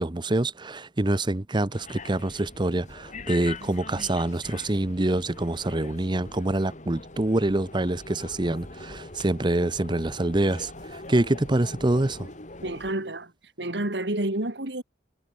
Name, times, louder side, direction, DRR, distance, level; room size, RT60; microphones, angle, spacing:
voice 1, 0.0-12.3, right 1 dB, 25° right, 0.8 m, -26 dB
sound 1, 1.7-12.9, left 2 dB, 45° left, 4.8 m, -42 dB
voice 2, 12.6-13.3 13.6-14.8, right 1 dB, 70° right, 2.7 m, -29 dB
head